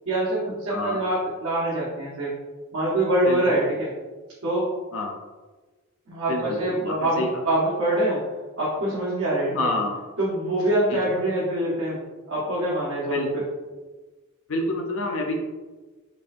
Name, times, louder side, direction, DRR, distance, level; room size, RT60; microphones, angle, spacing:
voice 1, 0.1-2.3 2.7-3.9 4.4-4.7 6.1-8.2 8.6-9.7 10.2-12.0 12.3-13.2, right 1 dB, 85° right, -8 dB, 1.1 m, -24 dB
voice 2, 0.7-1.0 3.3-3.4 4.9-5.2 6.3-7.3 9.5-10.0 10.9-11.0 13.1-13.5 14.5-15.3, left 2 dB, 65° left, 1 dB, 0.6 m, -28 dB
5.3 x 2.5 x 2.6 m, 1.3 s
head